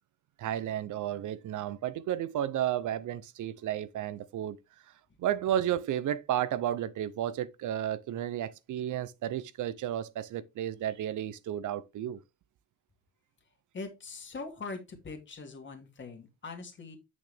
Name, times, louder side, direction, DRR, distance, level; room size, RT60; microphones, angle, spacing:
voice 1, 0.4-4.6 5.2-12.2, right 11 dB, 65° right, 0.6 m, -32 dB
voice 2, 13.7-17.0, left 4 dB, 35° left, 2.1 m, -42 dB
8.1 x 6.2 x 3.4 m
cardioid pair, 155°, 33 cm